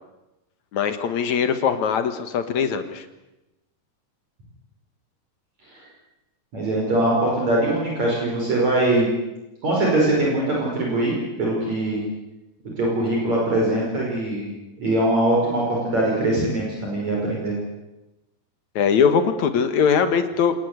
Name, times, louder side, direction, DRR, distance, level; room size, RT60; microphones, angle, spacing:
voice 1, 0.7-3.1 18.8-20.5, left 6 dB, 55° left, 9 dB, 2.4 m, -21 dB
voice 2, 6.5-9.1 9.6-12.0 12.8-14.5 14.8-17.6, right 1 dB, 45° right, -3 dB, 6.5 m, -22 dB
27.0 x 19.5 x 8.1 m, 0.98 s
omnidirectional pair, 4.6 m